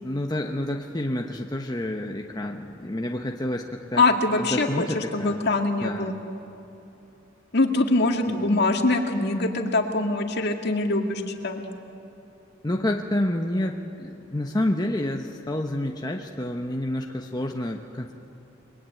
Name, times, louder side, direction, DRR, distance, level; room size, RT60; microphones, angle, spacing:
voice 1, 0.0-4.0 4.4-5.5 5.8-6.1 8.3-8.4 12.6-18.1, left 1 dB, 20° left, 2 dB, 1.0 m, -29 dB
voice 2, 3.9-6.2 7.5-11.6, left 2 dB, 55° left, 3 dB, 2.3 m, -23 dB
30.0 x 21.5 x 9.2 m, 2.8 s
head